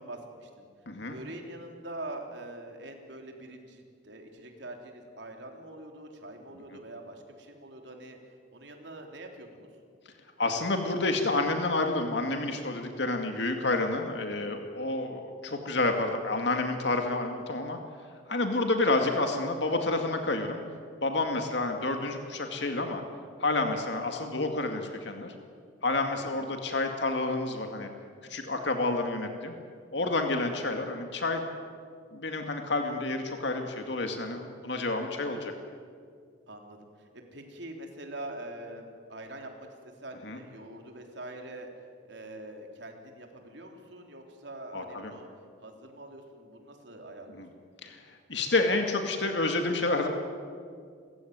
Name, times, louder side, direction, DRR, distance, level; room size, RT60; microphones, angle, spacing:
voice 1, 0.0-0.7 1.0-8.2 8.5-9.7 14.7-15.2 26.1-26.4 36.5-41.7 42.1-45.3 45.6-47.6, right 1 dB, 70° right, 3 dB, 3.6 m, -44 dB
voice 2, 0.9-1.2 10.4-17.8 18.3-20.6 21.0-23.0 23.4-25.3 25.8-27.9 28.3-29.5 29.9-31.4 32.1-35.5 40.2-40.4 44.7-45.1 47.4-47.5 47.8-50.1, left 2 dB, 65° left, 4 dB, 2.2 m, -29 dB
29.5 x 15.5 x 9.5 m, 2.2 s
head